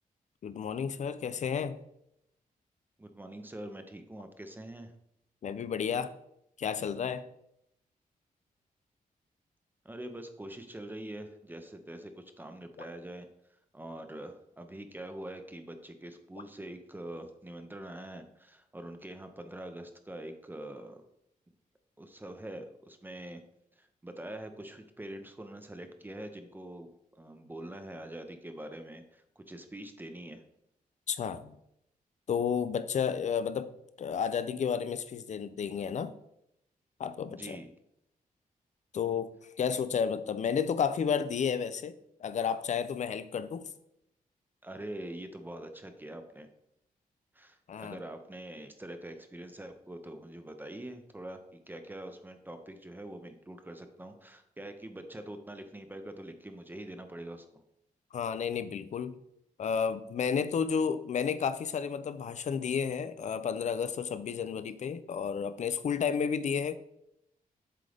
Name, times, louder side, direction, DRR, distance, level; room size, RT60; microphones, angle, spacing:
voice 1, 0.4-1.8 5.4-6.1 6.6-7.2 31.1-31.6 32.3-33.7 34.0-36.1 37.0-37.6 38.9-39.3 39.6-41.9 42.2-43.7 47.7-48.0 58.1-59.2 59.6-66.7, left 7 dB, 55° left, 13 dB, 0.4 m, -31 dB
voice 2, 3.0-4.9 9.8-13.3 13.7-21.0 22.0-23.4 23.8-26.9 27.1-30.4 37.3-37.7 44.6-46.5 47.3-57.6, right 1 dB, 15° right, 7 dB, 0.6 m, -44 dB
7.6 x 3.7 x 3.4 m, 0.79 s
wide cardioid pair, 110°, 15 cm